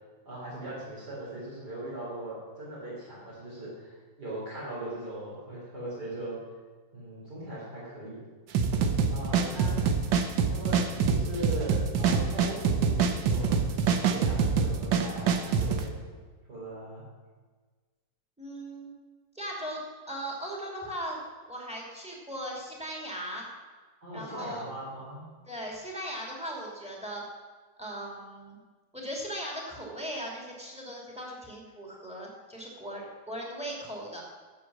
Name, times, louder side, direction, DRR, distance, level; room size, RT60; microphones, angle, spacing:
voice 1, 0.3-6.4 6.9-8.2 9.1-9.8 10.5-16.0 16.5-17.1 24.0-25.3, right 1 dB, 60° right, -8 dB, 4.4 m, -39 dB
sound 1, 8.5-15.8, right 6 dB, 80° right, 1.7 m, -25 dB
voice 2, 18.4-18.9 19.3-19.8 20.1-21.2 21.5-23.5 24.1-24.6 25.5-27.2 27.8-28.6 28.9-34.2, equal, 5° right, -2 dB, 2.7 m, -38 dB
14.0 x 7.8 x 6.3 m, 1.4 s
omnidirectional pair, 2.0 m